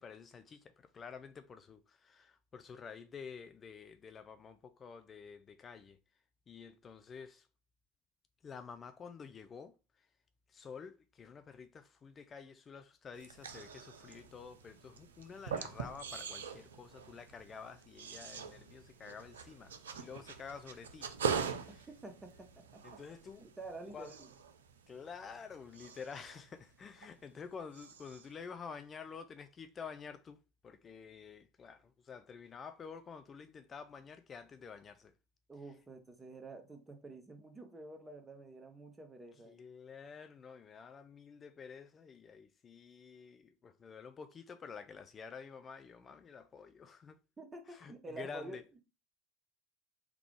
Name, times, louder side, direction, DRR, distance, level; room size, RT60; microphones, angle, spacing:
voice 1, 0.0-6.0 6.5-7.5 8.4-10.1 10.5-21.1 21.5-21.9 22.8-23.5 23.9-24.1 24.9-35.1 39.5-47.2 47.7-48.6, left 6 dB, 30° left, 0.4 m, -50 dB
sound 1, 13.1-27.4 27.7-28.4, right 6 dB, 80° right, 0.4 m, -43 dB
voice 2, 21.9-22.8 23.4-24.3 35.5-39.6 47.4-48.8, right 2 dB, 20° right, 0.9 m, -49 dB
3.6 x 2.3 x 3.4 m
hypercardioid pair, 75°, 0 cm